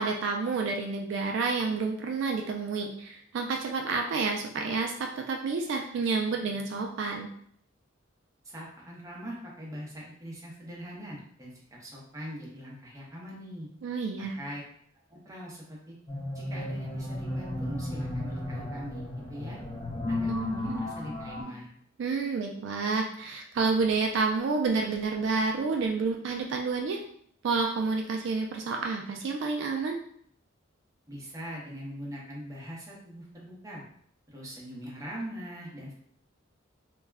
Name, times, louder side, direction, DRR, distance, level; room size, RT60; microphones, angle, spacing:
voice 1, 0.0-7.3 13.8-14.4 20.3-20.8 22.0-27.0 27.4-30.0, right 4 dB, 65° right, 2 dB, 0.3 m, -29 dB
voice 2, 8.4-11.5 11.8-13.7 14.2-14.6 15.1-16.0 16.3-19.0 19.3-19.6 20.1-21.7 31.1-33.8 34.3-35.9, equal, 15° right, -4 dB, 0.7 m, -41 dB
sound 1, 16.1-21.4, left 1 dB, 25° left, 0.7 m, -34 dB
2.3 x 2.1 x 3.3 m, 0.64 s
head